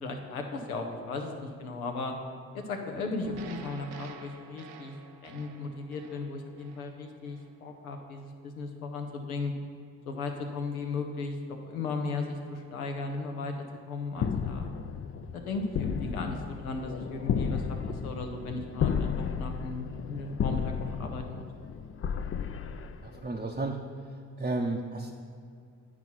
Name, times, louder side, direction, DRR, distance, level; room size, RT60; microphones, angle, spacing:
voice 1, 0.0-2.1 2.5-4.9 5.2-9.5 10.1-13.5 13.9-14.7 15.3-21.5, left 3 dB, 90° left, 3 dB, 0.7 m, -36 dB
sound 1, 3.2-7.5, right 5 dB, 65° right, 0.7 m, -47 dB
sound 2, 14.2-23.5, left 7 dB, 35° left, 0.5 m, -33 dB
voice 2, 23.0-23.8 24.4-25.1, right 2 dB, 20° right, -1 dB, 0.7 m, -32 dB
9.5 x 4.7 x 5.6 m, 2.3 s
hypercardioid pair, 40°, 42 cm